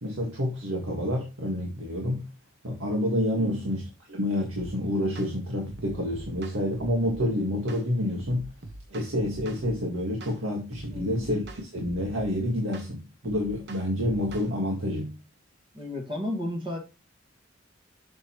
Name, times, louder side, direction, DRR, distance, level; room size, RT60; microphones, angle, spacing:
voice 1, 0.0-2.3 2.6-3.8 4.1-8.5 8.9-15.2, left 1 dB, 90° right, 1.7 m, -28 dB
sound 1, 4.5-4.7 5.2-5.3 5.7-7.3 7.7-7.9 8.2-9.8 10.2-10.4 10.7-12.3 12.7-12.9 13.2-14.5, right 2 dB, 55° right, 0.9 m, -43 dB
voice 2, 10.9-11.3 15.7-16.8, left 1 dB, 25° right, 1.8 m, -33 dB
7.3 x 6.6 x 3.0 m
head